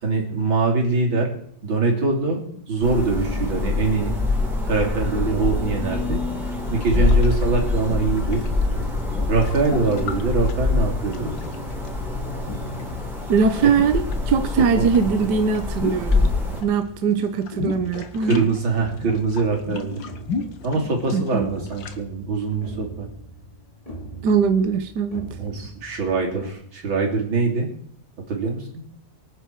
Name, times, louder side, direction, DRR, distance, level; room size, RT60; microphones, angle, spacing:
voice 1, 0.0-1.3 1.6-4.1 4.6-6.2 6.7-8.4 9.3-11.3 14.6-14.9 18.2-20.0 20.6-23.1 25.4-27.7 28.3-28.8, right 4 dB, 90° right, -1 dB, 4.0 m, -23 dB
sound 1, 2.8-16.6, left 3 dB, ahead, 4.4 m, -25 dB
sound 2, 6.6-11.9 12.4-14.2 14.5-16.7 17.0-22.0, left 4 dB, 70° left, 2.0 m, -35 dB
sound 3, 8.5-26.5, right 1 dB, 20° left, 2.8 m, -41 dB
voice 2, 13.3-16.3 16.6-18.5 21.1-21.5 24.2-25.3, right 6 dB, 65° right, 8 dB, 1.6 m, -21 dB
24.0 x 10.0 x 4.7 m, 0.64 s
omnidirectional pair, 2.1 m